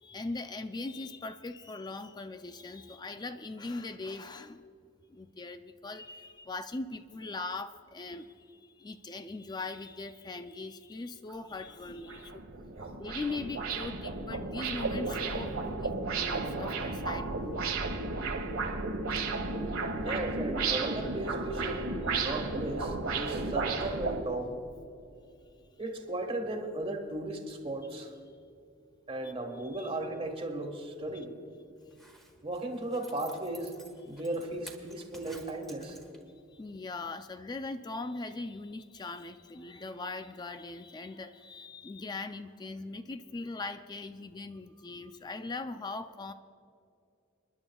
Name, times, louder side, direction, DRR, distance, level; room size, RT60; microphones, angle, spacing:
voice 1, 0.0-4.6 5.1-12.4 13.0-15.5 15.8-18.5 18.9-20.4 29.2-29.3 29.6-29.9 31.1-31.2 36.5-46.3, left 3 dB, 20° left, 9 dB, 0.3 m, -41 dB
sound 1, 11.3-11.4 11.8-24.2, right 3 dB, 90° right, 1.4 m, -33 dB
voice 2, 20.0-21.8 22.1-24.5 25.8-28.1 29.1-31.3 32.4-33.7 34.1-36.0, right 2 dB, 25° right, 4 dB, 1.4 m, -36 dB
Zipper (clothing), 31.8-36.4 36.8-36.9, right 1 dB, ahead, 1.5 m, -52 dB
28.0 x 10.5 x 2.3 m, 2.6 s
head